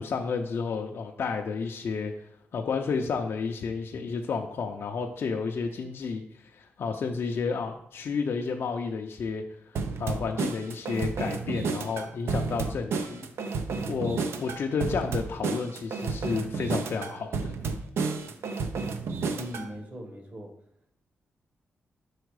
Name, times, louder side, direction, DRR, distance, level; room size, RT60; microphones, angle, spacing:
voice 1, 0.0-2.1 2.5-13.3 13.9-17.5, left 5 dB, 60° left, 3 dB, 0.5 m, -31 dB
sound 1, 9.8-19.7, right 4 dB, 75° right, 0.6 m, -31 dB
voice 2, 19.3-20.5, equal, 40° right, 4 dB, 1.2 m, -39 dB
4.8 x 4.4 x 4.7 m, 0.72 s
cardioid pair, 110°, 4 cm